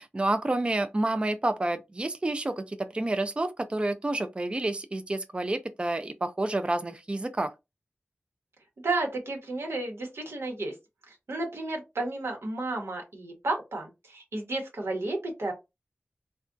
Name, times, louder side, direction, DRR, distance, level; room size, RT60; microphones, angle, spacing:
voice 1, 0.0-7.5, right 2 dB, 25° right, 0.3 m, -29 dB
voice 2, 8.8-10.7 11.1-15.5, right 2 dB, 90° right, 1.0 m, -32 dB
3.4 x 2.2 x 2.5 m
wide cardioid pair, 60°, 4 cm